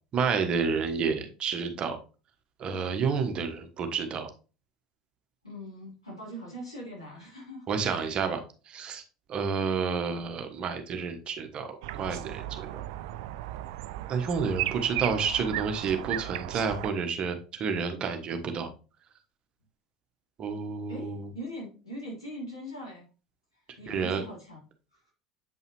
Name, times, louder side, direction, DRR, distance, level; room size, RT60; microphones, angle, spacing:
voice 1, 0.1-2.0 2.6-4.3 7.7-8.4 8.7-9.0 9.3-12.8 14.1-18.7 20.4-21.3 23.9-24.2, right 5 dB, 40° right, 6 dB, 1.2 m, -30 dB
voice 2, 5.4-8.2 20.9-23.1 23.8-24.6 24.9-25.1, equal, 85° left, -5 dB, 3.5 m, -41 dB
sound 1, 11.8-16.9, right 14 dB, 60° right, 0.4 m, -35 dB
8.0 x 5.4 x 3.1 m, 0.35 s
figure-of-eight pair, 70°, 3 cm